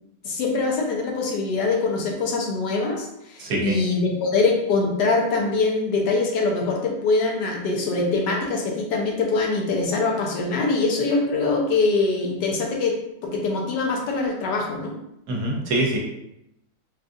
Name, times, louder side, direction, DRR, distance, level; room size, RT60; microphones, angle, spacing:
voice 1, 0.2-13.0 13.2-14.9, left 3 dB, 90° left, 0 dB, 1.4 m, -23 dB
voice 2, 3.4-3.8 15.3-16.0, right 1 dB, 75° right, -1 dB, 1.2 m, -24 dB
3.9 x 2.4 x 2.5 m, 0.80 s
omnidirectional pair, 1.8 m